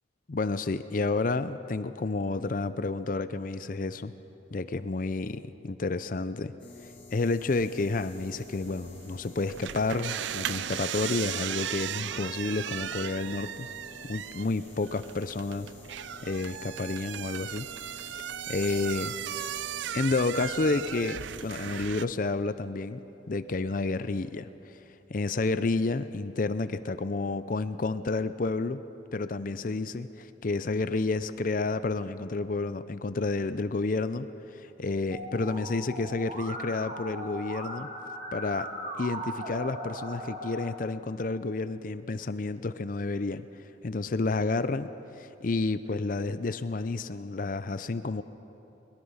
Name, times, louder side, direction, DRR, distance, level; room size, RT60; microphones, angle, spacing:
voice 1, 0.3-4.1 4.5-6.5 7.1-13.7 14.0-15.7 16.2-17.7 18.0-19.1 19.9-23.0 23.3-24.5 25.1-28.8 29.1-37.9 38.3-38.7 39.0-43.4 43.8-48.2, left 3 dB, 45° left, 13 dB, 0.5 m, -30 dB
sound 1, 6.6-21.9, left 3 dB, 30° left, 4.0 m, -51 dB
sound 2, 7.4-22.0, right 10 dB, 75° right, 0.4 m, -37 dB
Musical instrument, 35.1-40.7, equal, 40° right, 2.3 m, -38 dB
22.0 x 21.5 x 5.6 m, 3.0 s
head